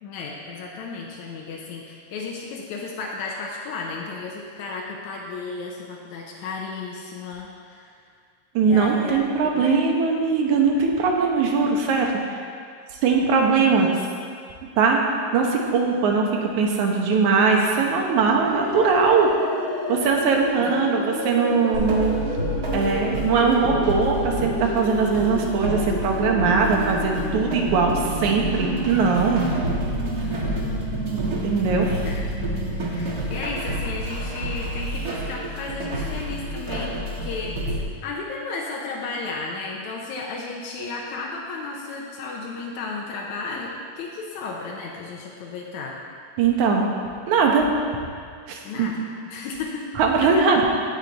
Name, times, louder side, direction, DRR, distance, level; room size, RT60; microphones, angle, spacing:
voice 1, 0.0-7.9 8.6-9.2 9.5-9.8 13.6-13.9 20.6-20.9 30.2-46.0 48.6-50.0 50.2-50.3, left 3 dB, 90° left, -2 dB, 2.3 m, -34 dB
voice 2, 8.5-12.4 13.0-13.9 14.8-19.3 19.9-22.1 22.7-29.5 31.1-31.9 46.4-46.9 47.3-47.7 48.5-48.9 50.0-50.6, right 5 dB, 85° right, 1 dB, 2.5 m, -21 dB
sound 1, 18.5-33.4, equal, 50° left, 3.3 m, -30 dB
sound 2, 21.7-37.8, equal, 45° right, 1.4 m, -30 dB
16.5 x 6.4 x 4.1 m, 2.1 s
omnidirectional pair, 3.3 m